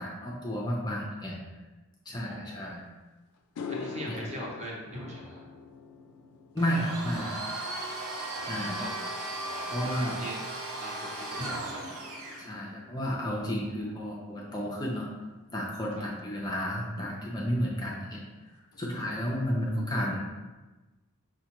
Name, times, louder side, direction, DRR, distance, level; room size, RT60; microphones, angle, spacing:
voice 1, 0.0-1.4 2.1-2.9 4.1-4.2 6.5-7.4 8.5-8.8 9.7-10.2 12.4-15.1 15.5-18.2 18.8-20.2, equal, 20° left, -3 dB, 0.4 m, -32 dB
voice 2, 2.2-2.8 3.7-5.4 8.3-8.9 9.4-10.4 10.8-11.9 13.3-13.5 15.9-16.0 19.0-19.2, right 1 dB, 30° right, -3 dB, 0.7 m, -42 dB
sound 1, 2.8-2.9 3.4-11.9 12.2-12.6 16.2-16.3 17.9-18.0 18.3-18.5 18.7-19.3, left 4 dB, 80° left, 0.3 m, -45 dB
sound 2, 4.9-7.8 11.4-14.7, left 1 dB, 55° right, 1.1 m, -48 dB
Domestic sounds home sounds, 6.6-12.5, right 2 dB, 80° right, 0.7 m, -36 dB
5.3 x 2.2 x 2.9 m, 1.2 s
head